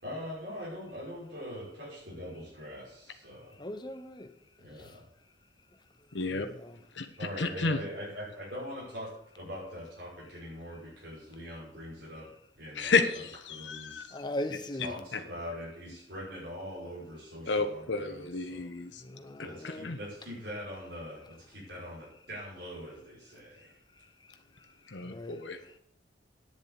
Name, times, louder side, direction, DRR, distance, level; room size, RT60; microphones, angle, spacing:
voice 1, 0.0-3.6 4.6-5.0 7.2-12.3 12.6-13.0 13.5-14.1 14.8-18.7 19.4-23.8, equal, 70° right, 5.8 m, -42 dB
voice 2, 3.6-4.3 4.8-4.9 6.3-6.8 14.1-15.0 19.0-19.9 25.0-25.7, left 1 dB, 25° left, 1.0 m, -39 dB
voice 3, 6.1-6.5 6.9-7.1 7.4-7.8 12.7-14.2 15.1-15.2 17.5-19.0 19.8-20.0 24.9-25.8, left 4 dB, 80° left, 1.2 m, -31 dB
10.0 x 7.3 x 8.2 m
head